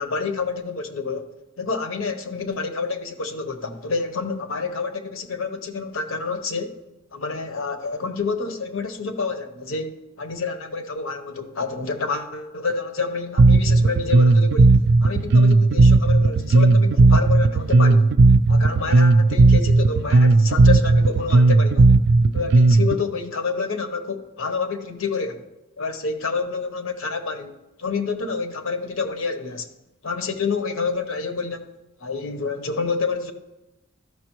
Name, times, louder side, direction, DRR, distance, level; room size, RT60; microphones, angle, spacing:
voice 1, 0.0-6.8 7.1-18.1 18.5-21.9 22.3-25.5 25.8-29.7 30.0-31.7 32.0-33.3, left 4 dB, 80° left, 7 dB, 0.9 m, -28 dB
Bass guitar, 13.4-23.0, right 3 dB, 55° right, 0.3 m, -15 dB
13.0 x 5.9 x 3.0 m, 1.0 s
head